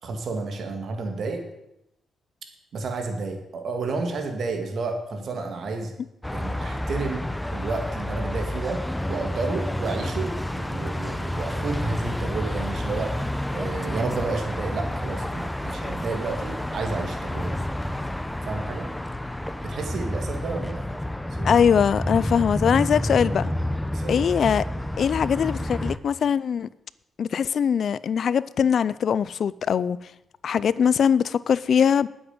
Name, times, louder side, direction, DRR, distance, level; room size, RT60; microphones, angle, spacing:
voice 1, 0.0-1.4 2.7-5.9 6.3-17.6 18.5-18.9 19.6-20.9 21.4-21.5 23.9-24.3, right 3 dB, 60° right, 2.4 m, -31 dB
sound 1, 6.2-26.0, left 1 dB, 5° left, 0.7 m, -29 dB
voice 2, 21.4-23.5 24.1-24.6 25.0-26.7 27.2-30.0 30.4-32.1, left 7 dB, 60° left, 0.5 m, -21 dB
9.7 x 8.0 x 8.1 m
cardioid pair, 90°, 0 cm